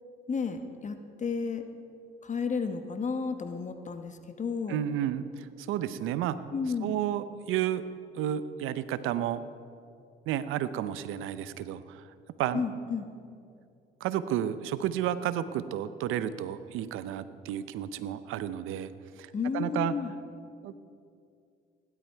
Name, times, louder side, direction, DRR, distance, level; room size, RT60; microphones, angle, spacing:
voice 1, 0.3-1.6 2.2-4.8 6.5-7.0 12.5-13.1 19.3-20.1, left 5 dB, 35° left, 7 dB, 1.2 m, -32 dB
voice 2, 4.7-6.4 6.8-7.8 8.1-9.4 10.3-12.0 12.4-12.6 14.0-18.9 19.2-19.9 20.6-20.7, right 11 dB, 75° right, 14 dB, 0.7 m, -31 dB
16.5 x 11.5 x 4.6 m, 2.4 s
supercardioid pair, 75°, 21 cm